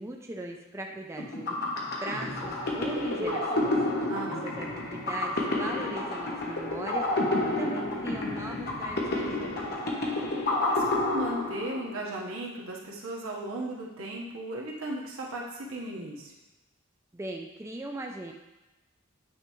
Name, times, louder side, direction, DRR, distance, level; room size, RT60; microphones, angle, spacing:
voice 1, 0.0-1.6 2.0-4.1 4.4-7.3 7.6-9.6 17.1-18.3, right 2 dB, 15° right, 1 dB, 0.4 m, -39 dB
sound 1, 1.2-12.0, left 2 dB, 50° left, 1.0 m, -30 dB
sound 2, 2.2-9.7, equal, 40° right, 1.1 m, -44 dB
voice 2, 4.1-4.8 10.6-16.3, right 1 dB, 80° right, -2 dB, 1.2 m, -36 dB
9.2 x 3.4 x 3.0 m, 1.0 s
head